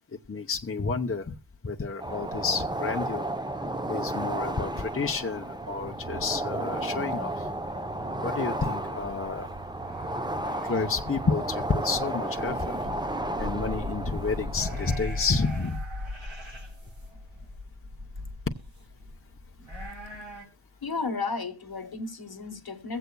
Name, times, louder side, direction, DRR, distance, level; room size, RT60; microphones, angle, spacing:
voice 1, 0.3-1.3 1.6-3.3 3.9-7.5 8.2-9.5 10.6-12.8 13.4-15.8, left 4 dB, 30° left, 0.7 m, -30 dB
sound 1, 2.0-15.0, right 1 dB, 10° right, 0.7 m, -33 dB
sound 2, 9.1-20.4, left 1 dB, 80° right, 2.7 m, -39 dB
voice 2, 20.8-23.0, left 4 dB, 55° left, 1.3 m, -33 dB
23.0 x 8.0 x 2.3 m
wide cardioid pair, 60°, 45 cm